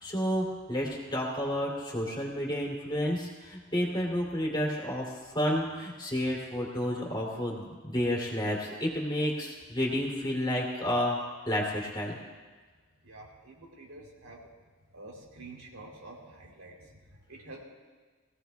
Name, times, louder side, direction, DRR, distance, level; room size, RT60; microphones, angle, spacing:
voice 1, 0.0-12.2, equal, 20° left, -3 dB, 2.9 m, -31 dB
voice 2, 13.0-14.4 14.9-17.6, right 2 dB, 85° right, -1 dB, 3.3 m, -48 dB
22.0 x 16.5 x 2.3 m, 1.4 s
head